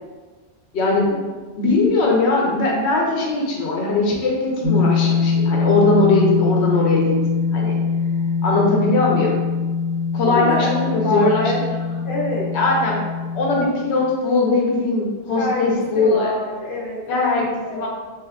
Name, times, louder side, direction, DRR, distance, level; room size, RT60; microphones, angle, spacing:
voice 1, 0.7-1.1 1.6-7.2 7.5-7.8 8.4-9.4 10.1-11.5 12.5-13.0 13.3-16.3 17.1-17.9, left 3 dB, 85° left, -2 dB, 0.9 m, -20 dB
sound 1, 4.6-13.7, left 5 dB, 60° right, 0.8 m, -22 dB
voice 2, 10.2-11.6 12.0-12.5 15.3-17.9, left 1 dB, 55° left, -4 dB, 0.9 m, -27 dB
3.1 x 2.3 x 3.4 m, 1.4 s
omnidirectional pair, 1.1 m